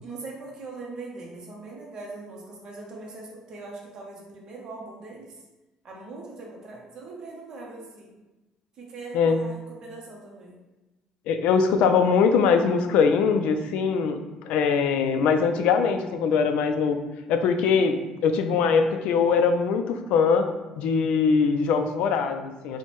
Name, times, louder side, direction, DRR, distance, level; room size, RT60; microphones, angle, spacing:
voice 1, 0.0-5.3 5.8-8.2 8.8-10.6, right 3 dB, 30° right, -3 dB, 0.7 m, -41 dB
voice 2, 11.3-17.0 17.3-20.5 20.8-22.8, left 5 dB, 70° left, 7 dB, 0.3 m, -22 dB
4.4 x 2.1 x 3.0 m, 1.1 s
cardioid pair, 175°, 2 cm